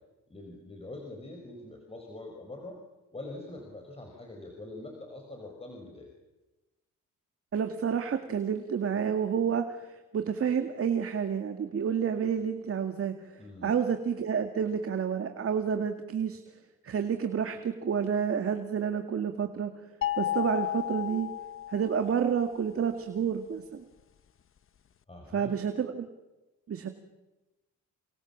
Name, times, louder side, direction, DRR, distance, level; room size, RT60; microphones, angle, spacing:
voice 1, 0.3-2.8 3.1-6.1 13.4-13.7 25.1-25.5, left 2 dB, 20° left, 1 dB, 5.6 m, -44 dB
voice 2, 7.5-13.3 13.6-16.4 16.8-19.7 20.2-21.3 21.7-23.8 25.3-26.1 26.7-26.9, right 7 dB, 50° right, 6 dB, 2.1 m, -29 dB
sound 1, 20.0-22.3, left 12 dB, 45° left, 1.0 m, -33 dB
29.0 x 25.5 x 7.3 m, 1.1 s
cardioid pair, 90°, 30 cm